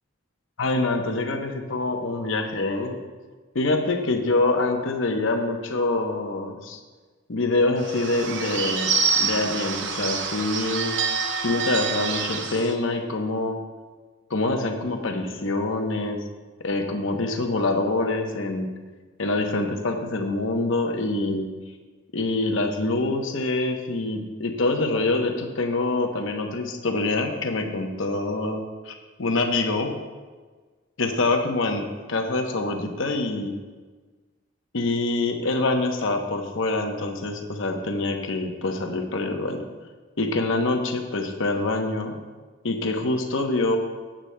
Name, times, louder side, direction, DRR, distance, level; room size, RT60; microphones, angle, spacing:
voice 1, 0.6-3.0 3.5-6.8 7.3-11.0 11.4-13.6 14.3-16.2 16.6-18.7 19.2-21.5 22.1-30.0 31.0-33.6 34.7-39.6 40.2-42.1 42.6-43.8, left 2 dB, 75° left, 4 dB, 0.9 m, -25 dB
Bird / Bell, 7.8-12.7, right 5 dB, 60° right, 0.8 m, -26 dB
15.0 x 8.8 x 2.2 m, 1.4 s
head